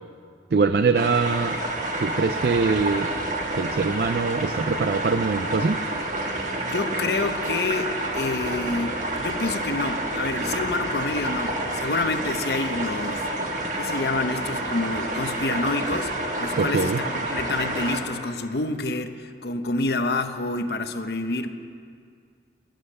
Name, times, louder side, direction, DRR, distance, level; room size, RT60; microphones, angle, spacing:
voice 1, 0.5-1.6 2.0-3.1 3.5-5.8 16.6-17.0, right 4 dB, 60° right, 10 dB, 0.4 m, -23 dB
sound 1, 0.9-18.0, right 1 dB, 45° right, 1.4 m, -29 dB
voice 2, 6.6-13.3 13.7-21.5, left 3 dB, 65° left, 8 dB, 0.8 m, -28 dB
22.5 x 7.9 x 6.6 m, 2.2 s
head